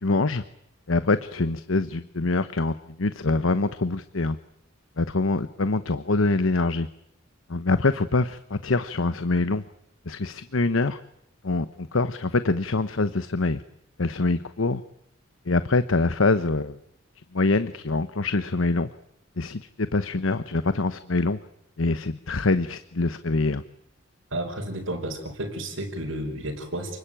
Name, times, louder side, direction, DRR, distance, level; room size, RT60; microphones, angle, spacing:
voice 1, 0.0-0.4 0.9-4.4 5.0-6.9 7.5-9.6 10.1-11.0 11.4-13.6 14.0-14.8 15.5-16.7 17.3-18.9 19.4-21.4 21.8-23.6, left 3 dB, 80° left, 13 dB, 1.0 m, -24 dB
voice 2, 24.3-27.0, right 1 dB, 80° right, -3 dB, 5.0 m, -32 dB
29.0 x 21.5 x 9.1 m, 0.77 s
head